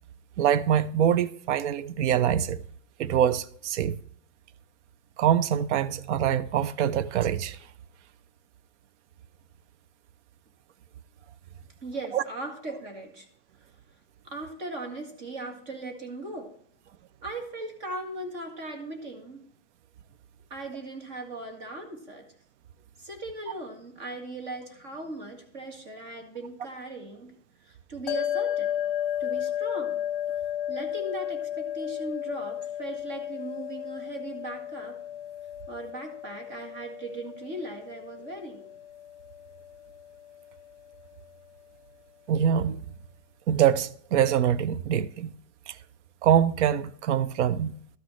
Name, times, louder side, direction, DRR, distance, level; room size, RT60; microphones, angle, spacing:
voice 1, 0.4-2.6 3.0-3.9 5.2-7.6 12.1-12.2 42.3-42.8 43.5-45.3 45.7-45.8 46.2-47.8, right 9 dB, 80° right, 0.6 m, -24 dB
voice 2, 11.8-13.3 14.2-16.5 17.2-19.4 20.5-22.3 23.0-27.3 27.6-28.7 29.2-30.0 30.7-35.0 35.7-38.7, right 2 dB, 40° right, 1.9 m, -38 dB
sound 1, 28.1-40.6, left 10 dB, 45° left, 0.8 m, -33 dB
12.5 x 6.2 x 3.1 m
supercardioid pair, 180°, 35 cm